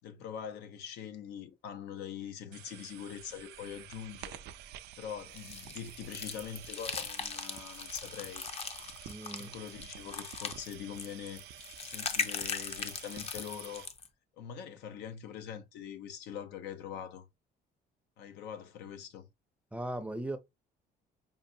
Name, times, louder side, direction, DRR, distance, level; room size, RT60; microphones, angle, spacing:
voice 1, 0.0-4.4 4.7-8.5 9.4-11.6 11.8-13.9 14.4-17.3 18.2-19.3, left 8 dB, 85° left, 0.7 m, -43 dB
sound 1, 2.5-13.9, right 12 dB, 75° right, 0.4 m, -50 dB
sound 2, 5.4-14.1, left 5 dB, 35° left, 0.6 m, -39 dB
voice 2, 9.1-9.5 19.7-20.4, right 1 dB, 5° right, 0.5 m, -38 dB
5.3 x 2.4 x 2.7 m
cardioid pair, 110°, 17 cm